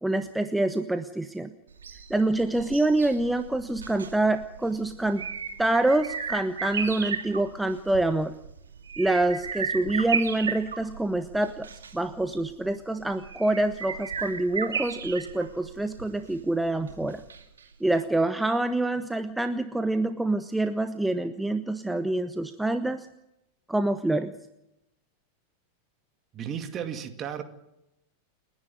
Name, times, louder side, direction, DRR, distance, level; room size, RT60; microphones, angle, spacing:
voice 1, 0.0-1.5 2.1-5.2 5.6-8.4 9.0-17.2 17.8-23.1 23.7-24.3, right 2 dB, 5° right, 10 dB, 0.9 m, -26 dB
sound 1, 1.7-17.6 17.9-18.0, right 6 dB, 70° right, 2.3 m, -35 dB
voice 2, 26.3-27.4, right 8 dB, 30° right, 7 dB, 2.4 m, -34 dB
29.5 x 10.5 x 9.5 m, 0.87 s
figure-of-eight pair, 90°, 0 cm